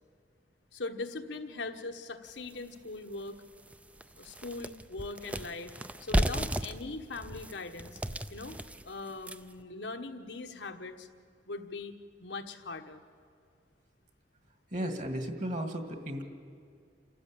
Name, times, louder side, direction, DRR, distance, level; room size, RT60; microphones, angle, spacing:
voice 1, 0.7-3.4 4.2-5.7 6.0-8.0 8.3-8.6 8.8-11.1 11.4-11.9 12.2-13.0, left 3 dB, 80° left, 6 dB, 1.3 m, -40 dB
sound 1, 2.5-2.6 3.1-3.2 3.6-9.6, right 1 dB, 10° right, 0.5 m, -34 dB
voice 2, 14.7-16.2, right 1 dB, 45° right, 6 dB, 2.0 m, -34 dB
28.5 x 13.5 x 8.6 m, 2.2 s
head